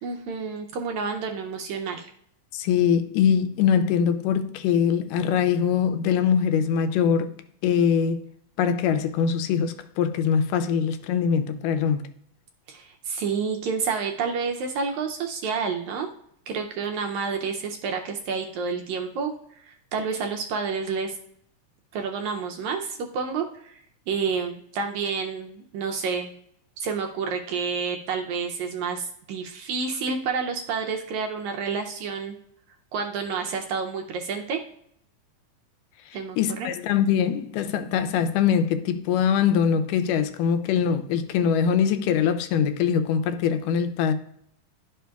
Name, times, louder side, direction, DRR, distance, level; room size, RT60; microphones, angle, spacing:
voice 1, 0.0-2.1 12.7-16.1 16.5-21.2 21.9-26.3 26.8-32.4 32.9-34.6 36.1-36.7, right 5 dB, 80° right, 1.7 m, -29 dB
voice 2, 2.5-7.3 7.6-8.2 8.6-12.1 36.4-44.1, left 7 dB, 85° left, 2.2 m, -23 dB
11.5 x 5.0 x 2.3 m
omnidirectional pair, 3.7 m